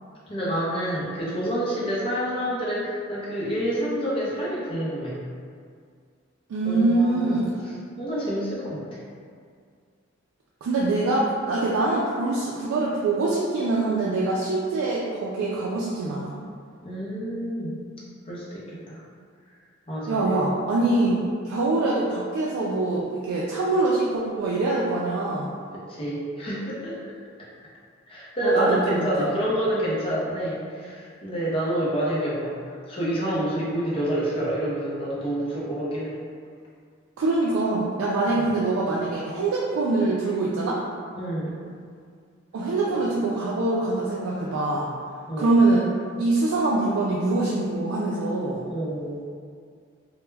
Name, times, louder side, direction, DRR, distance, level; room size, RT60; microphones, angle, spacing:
voice 1, 0.3-5.2 6.6-7.5 8.0-8.8 16.8-17.7 18.3-19.0 19.9-20.2 20.9-21.1 25.9-27.0 28.1-36.2 38.4-38.5 41.2-41.6 42.9-43.0 45.3-45.5 48.6-49.2, right 1 dB, 25° left, -7 dB, 0.5 m, -28 dB
voice 2, 6.5-7.5 10.6-16.4 20.1-25.5 28.4-29.3 37.2-40.8 42.5-44.9 45.4-45.9 46.2-48.6, right 2 dB, 90° right, -5 dB, 0.3 m, -24 dB
2.1 x 2.0 x 3.2 m, 2.1 s
head